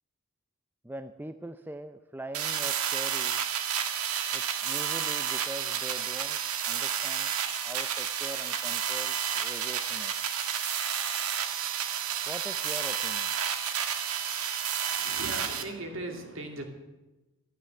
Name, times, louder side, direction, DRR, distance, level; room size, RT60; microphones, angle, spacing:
voice 1, 0.8-3.4 4.3-6.4 6.7-7.3 7.6-10.1 12.3-13.4, right 1 dB, 10° right, 10 dB, 0.4 m, -42 dB
sound 1, 2.3-15.6, right 8 dB, 90° right, 1.5 m, -31 dB
voice 2, 15.0-16.6, right 2 dB, 60° right, 4 dB, 2.7 m, -38 dB
13.0 x 12.5 x 7.8 m, 1.0 s
head